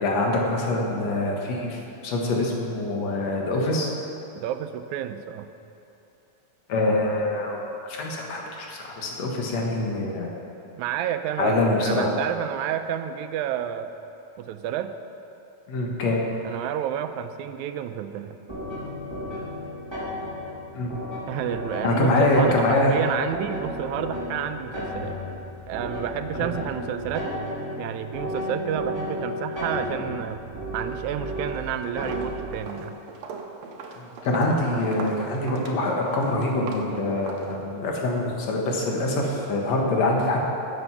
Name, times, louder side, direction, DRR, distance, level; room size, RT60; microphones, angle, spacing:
voice 1, 0.0-3.9 6.7-10.4 11.4-12.1 15.7-16.2 20.7-20.9 21.8-22.9 34.0-40.4, left 2 dB, 65° left, -1 dB, 2.5 m, -24 dB
voice 2, 4.4-5.5 10.8-13.9 14.4-14.9 16.5-18.4 21.3-25.2 25.7-27.3 27.8-30.4 30.7-33.0, right 10 dB, 90° right, 9 dB, 2.0 m, -30 dB
sound 1, 18.5-32.6, left 1 dB, 10° right, 2.3 m, -33 dB
Walk footsteps, 31.3-31.6 32.0-38.0, right 4 dB, 75° right, 2.0 m, -39 dB
13.0 x 7.9 x 5.6 m, 2.9 s
omnidirectional pair, 3.3 m